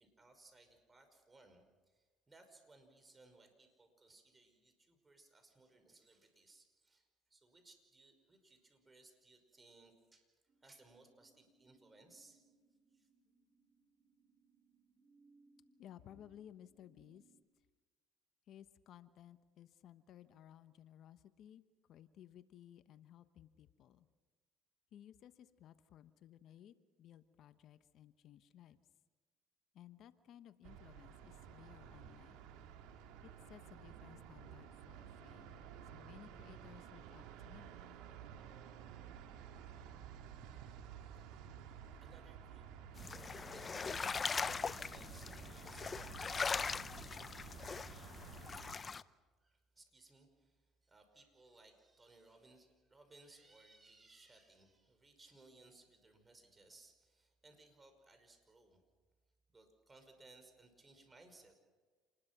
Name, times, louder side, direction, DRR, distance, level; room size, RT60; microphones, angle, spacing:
voice 1, 0.0-10.2 10.6-12.4 12.9-13.1 41.2-42.7 43.0-46.2 49.4-58.8 59.5-61.5, right 2 dB, 20° right, 6 dB, 5.4 m, -64 dB
sound 1, 10.5-17.4, right 3 dB, 40° right, 4.4 m, -72 dB
voice 2, 15.8-17.3 18.5-24.1 24.9-28.8 29.7-32.5 33.2-35.6 35.9-37.8, left 11 dB, 60° left, 12 dB, 1.1 m, -59 dB
sound 2, 30.6-48.8, right 8 dB, 80° right, 2.2 m, -53 dB
sound 3, 43.0-49.0, left 5 dB, 30° left, 0.7 m, -41 dB
28.0 x 20.5 x 6.1 m, 1.4 s
supercardioid pair, 85°, 0 cm